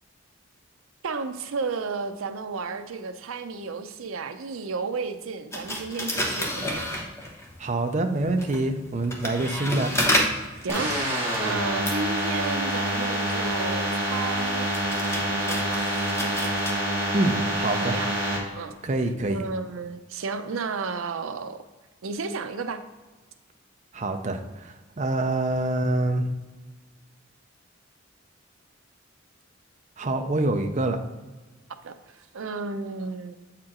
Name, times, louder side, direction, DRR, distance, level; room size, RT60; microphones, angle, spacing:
voice 1, 1.0-6.9 10.6-10.9 11.4-14.7 15.3-15.9 17.8-18.1 18.5-18.8 19.3-21.6 22.0-22.8 31.8-33.4, right 4 dB, 85° right, 9 dB, 0.5 m, -33 dB
sound 1, 5.5-7.6 8.2-16.7, equal, 15° left, 0.9 m, -31 dB
voice 2, 7.6-9.9 17.1-18.0 18.8-19.4 23.9-26.3 30.0-31.0, right 2 dB, 35° right, 6 dB, 0.5 m, -26 dB
sound 2, 10.7-18.4, right 1 dB, 10° right, 1.8 m, -27 dB
7.6 x 4.4 x 3.7 m, 1.2 s
head